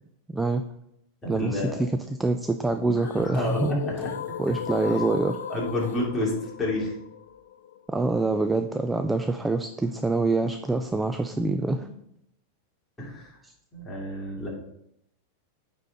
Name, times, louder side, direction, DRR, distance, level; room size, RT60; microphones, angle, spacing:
voice 1, 0.3-0.6 1.3-3.8 4.4-5.4 7.9-11.9 13.4-13.5, right 3 dB, 10° right, 8 dB, 0.3 m, -25 dB
voice 2, 1.2-1.8 3.1-4.1 4.8-5.0 5.5-6.9 13.0-13.3 13.7-14.5, left 1 dB, 10° left, -5 dB, 2.7 m, -30 dB
sound 1, 2.8-8.8, left 9 dB, 90° left, 0.4 m, -37 dB
9.1 x 4.1 x 3.8 m, 0.77 s
supercardioid pair, 140°, 0 cm